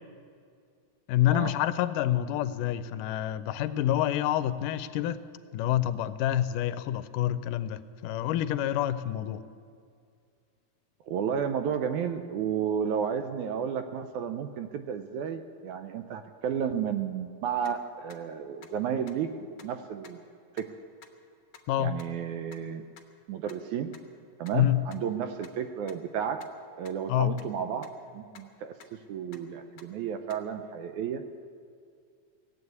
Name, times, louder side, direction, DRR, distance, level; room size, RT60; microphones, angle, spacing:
voice 1, 1.1-5.2 5.5-9.4 21.7-21.9 24.5-24.8 27.1-27.3, left 12 dB, 85° left, 13 dB, 2.1 m, -27 dB
voice 2, 11.1-19.3 19.6-20.2 20.6-20.7 21.8-22.8 23.3-23.9 24.4-26.5 26.8-31.2, right 8 dB, 75° right, 8 dB, 1.9 m, -32 dB
sound 1, 17.6-17.7 18.1-18.2 18.6-18.7 19.1-19.2 19.6-19.7 20.0-20.1 20.6-20.7 21.0-21.1 21.5-21.6 22.0-22.1 22.5-22.6 23.0-23.1 23.5-23.6 23.9-24.0 24.5-24.6 24.9-25.0 25.4-25.5 25.9-26.0 26.4-26.5 26.8-26.9 27.4-27.5 27.8-27.9 28.3-28.4 28.8-28.9 29.3-29.4 29.8-29.9 30.3-30.4, left 7 dB, 70° left, 1.1 m, -50 dB
17.5 x 8.2 x 9.5 m, 2.3 s
omnidirectional pair, 3.8 m